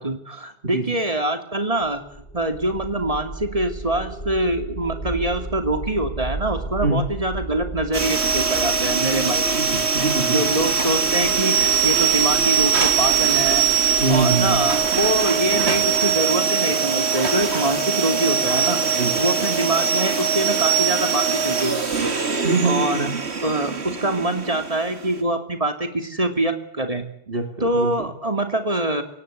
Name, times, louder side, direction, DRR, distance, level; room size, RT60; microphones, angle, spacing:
voice 1, 0.0-2.0 2.3-9.6 10.3-13.6 14.1-18.8 19.2-23.1 23.4-27.0 27.6-29.0, right 1 dB, 35° right, 7 dB, 3.0 m, -24 dB
sound 1, 1.8-17.0, right 1 dB, 80° left, 6.5 m, -36 dB
sound 2, 7.9-25.2, right 6 dB, 90° right, 2.3 m, -22 dB
voice 2, 9.5-10.4 14.0-14.6 19.0-19.2 22.4-23.1 27.3-28.1, right 4 dB, 60° right, 4 dB, 3.2 m, -24 dB
sound 3, 16.2-22.4, equal, 60° left, 3.6 m, -36 dB
24.0 x 18.0 x 8.3 m, 0.74 s
omnidirectional pair, 1.1 m